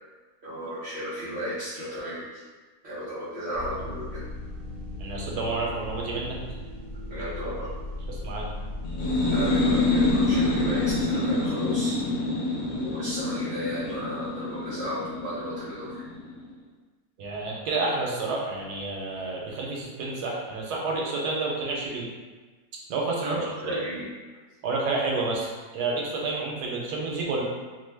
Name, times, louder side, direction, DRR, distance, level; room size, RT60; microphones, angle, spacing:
voice 1, 0.4-2.4 2.8-4.3 7.1-7.7 9.3-12.0 12.8-16.0 23.2-24.1, equal, 50° right, -11 dB, 0.9 m, -34 dB
sound 1, 3.5-11.0, left 2 dB, 30° left, 0.7 m, -37 dB
voice 2, 5.0-6.4 8.1-8.5 17.2-22.1 22.9-23.4 23.7-23.8 24.6-27.4, right 3 dB, 90° right, -2 dB, 1.2 m, -29 dB
sound 2, 8.8-16.4, left 2 dB, 65° left, 1.0 m, -26 dB
2.9 x 2.2 x 3.2 m, 1.3 s
omnidirectional pair, 1.7 m